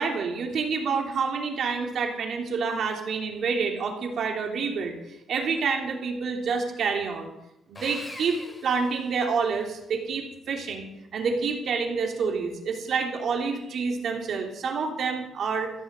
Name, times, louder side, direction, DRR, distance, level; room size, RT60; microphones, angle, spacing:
voice 1, 0.0-7.3 7.7-10.9 11.1-15.7, right 5 dB, 65° right, 2 dB, 3.0 m, -28 dB
Sawing, 7.7-9.6, left 1 dB, 20° left, 2.6 m, -43 dB
15.0 x 8.4 x 8.1 m, 0.88 s
cardioid pair, 110°, 0 cm